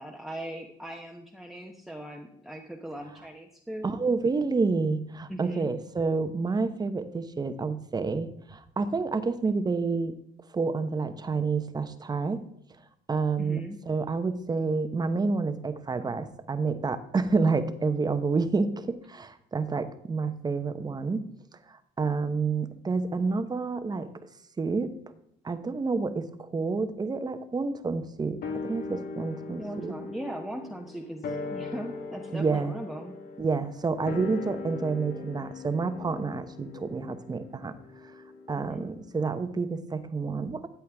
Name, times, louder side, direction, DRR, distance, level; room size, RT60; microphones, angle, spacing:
voice 1, 0.0-3.9 5.3-5.7 13.4-13.8 29.6-33.1 38.6-38.9, right 1 dB, ahead, 2 dB, 1.1 m, -39 dB
voice 2, 3.8-10.1 10.5-12.4 13.1-13.6 13.9-21.2 21.7-24.1 24.6-24.9 25.4-30.0 32.3-32.7 33.4-37.7 38.0-38.1 38.5-40.7, right 4 dB, 25° right, 10 dB, 1.0 m, -29 dB
sound 1, 28.4-39.0 39.3-39.4, left 4 dB, 65° left, 1.6 m, -40 dB
13.5 x 8.5 x 3.5 m, 0.73 s
cardioid pair, 110°, 17 cm